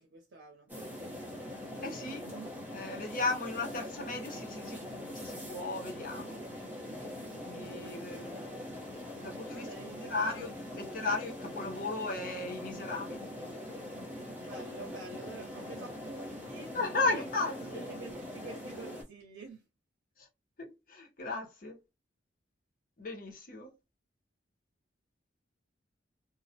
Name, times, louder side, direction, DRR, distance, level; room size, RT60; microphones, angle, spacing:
voice 1, 0.0-1.6 1.9-2.5 9.5-10.5 14.4-16.7 17.1-19.6, right 3 dB, 85° right, 0.6 m, -48 dB
sound 1, 0.7-19.0, left 1 dB, 10° right, 0.7 m, -42 dB
voice 2, 1.8-2.3 2.7-6.4 7.4-8.4 9.2-9.7 10.0-13.3 15.3-15.4 16.7-17.8 20.2-20.3 20.6-21.8 23.0-23.7, left 3 dB, 45° left, 0.7 m, -36 dB
2.3 x 2.0 x 2.7 m
head